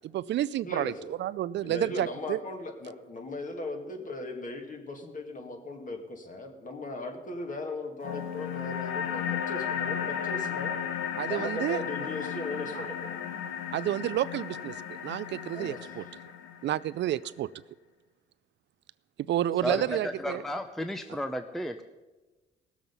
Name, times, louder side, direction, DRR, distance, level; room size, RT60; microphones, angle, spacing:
voice 1, 0.0-2.4 11.2-11.8 12.7-12.9 13.7-16.0 16.6-17.5 19.3-20.4, right 12 dB, 65° right, 17 dB, 0.4 m, -30 dB
voice 2, 1.6-10.7 11.3-13.2 15.5-15.9, left 2 dB, 40° left, 4 dB, 2.2 m, -38 dB
sound 1, 8.0-17.0, left 8 dB, 90° left, 1.1 m, -34 dB
voice 3, 19.6-21.8, equal, ahead, 8 dB, 0.6 m, -33 dB
17.5 x 7.2 x 5.4 m, 1.2 s
cardioid pair, 90°, 20 cm